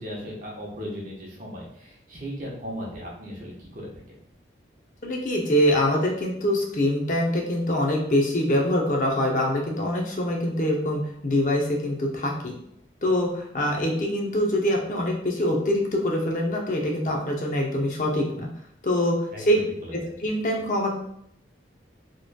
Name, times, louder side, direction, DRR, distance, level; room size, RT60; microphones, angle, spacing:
voice 1, 0.0-4.2 19.3-19.9, equal, 45° right, -3 dB, 1.0 m, -37 dB
voice 2, 5.0-12.5 13.0-18.5 18.8-19.2 19.5-19.6 19.9-21.0, left 1 dB, 45° left, 0 dB, 0.6 m, -24 dB
4.2 x 3.1 x 2.2 m, 0.71 s
head